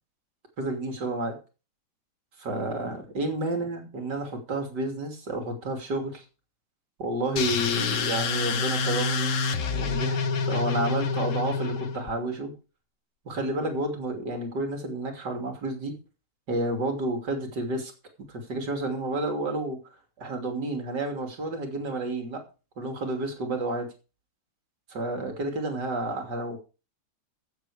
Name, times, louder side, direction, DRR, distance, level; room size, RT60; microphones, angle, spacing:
voice 1, 0.6-1.4 2.4-6.2 7.0-9.3 9.7-10.2 10.5-12.5 13.3-15.9 16.5-17.9 18.3-19.8 20.2-22.4 22.8-23.9 24.9-26.6, right 2 dB, 50° right, 4 dB, 3.4 m, -30 dB
sound 1, 7.4-12.1, left 5 dB, 50° left, 1.0 m, -27 dB
15.0 x 8.2 x 5.0 m, 0.34 s
omnidirectional pair, 2.4 m